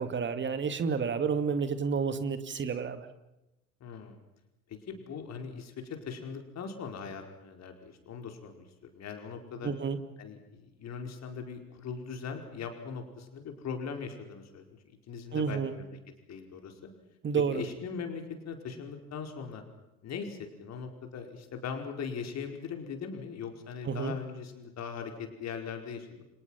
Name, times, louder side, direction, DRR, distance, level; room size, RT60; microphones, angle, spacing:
voice 1, 0.0-3.1 9.6-10.0 15.3-15.7 17.2-17.6 23.9-24.1, right 6 dB, 25° right, 10 dB, 2.4 m, -30 dB
voice 2, 3.8-4.1 4.7-9.7 10.2-16.0 16.3-16.9 17.4-19.6 20.0-26.2, left 6 dB, 35° left, 4 dB, 5.0 m, -40 dB
29.5 x 26.5 x 5.9 m, 0.93 s
figure-of-eight pair, 75°, 45 cm